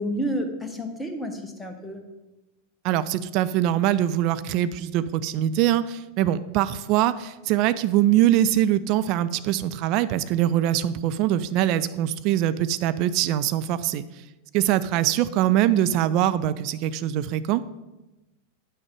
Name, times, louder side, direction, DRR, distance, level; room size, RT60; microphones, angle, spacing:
voice 1, 0.0-2.0, equal, 5° left, 3 dB, 1.2 m, -30 dB
voice 2, 2.8-14.0 14.5-17.6, right 12 dB, 40° right, 14 dB, 0.4 m, -23 dB
8.7 x 6.2 x 4.7 m, 1.0 s
figure-of-eight pair, 90°, 0 cm